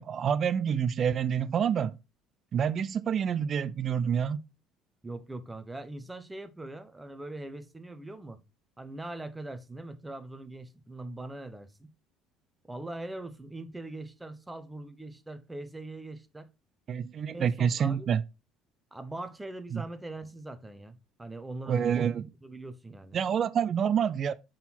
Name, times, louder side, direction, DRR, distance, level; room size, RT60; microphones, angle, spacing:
voice 1, 0.0-2.0 2.5-4.4 16.9-18.2 19.7-19.8 21.7-22.2 23.1-24.3, right 8 dB, 40° right, 0.3 m, -27 dB
voice 2, 5.0-8.4 8.8-11.9 12.6-16.5 17.3-18.1 18.9-22.1 22.4-23.2, right 2 dB, 10° right, 0.6 m, -41 dB
5.8 x 3.8 x 4.3 m
cardioid pair, 135°, 0 cm